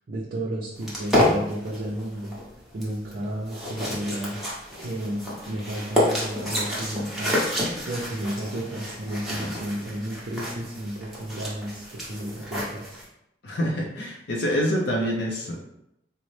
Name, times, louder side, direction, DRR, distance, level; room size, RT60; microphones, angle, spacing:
voice 1, 0.1-2.4 2.7-4.4 4.8-7.3 7.8-13.0, right 1 dB, 50° right, -4 dB, 0.5 m, -32 dB
sound 1, 0.8-13.0, left 1 dB, ahead, 0.7 m, -29 dB
voice 2, 13.4-15.7, equal, 65° left, -1 dB, 0.5 m, -26 dB
3.9 x 2.0 x 3.1 m, 0.81 s
head